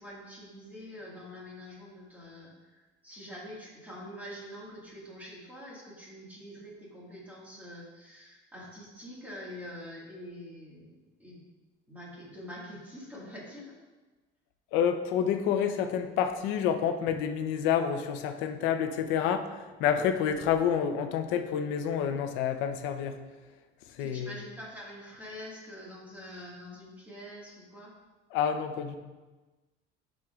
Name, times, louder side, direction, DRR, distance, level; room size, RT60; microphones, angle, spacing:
voice 1, 0.0-11.4 11.9-13.7 24.0-28.0, equal, 10° right, -6 dB, 1.8 m, -45 dB
voice 2, 14.7-23.2 23.9-24.3 28.3-29.0, left 8 dB, 75° left, 7 dB, 0.7 m, -28 dB
10.5 x 6.5 x 2.4 m, 1.2 s
cardioid pair, 180°, 19 cm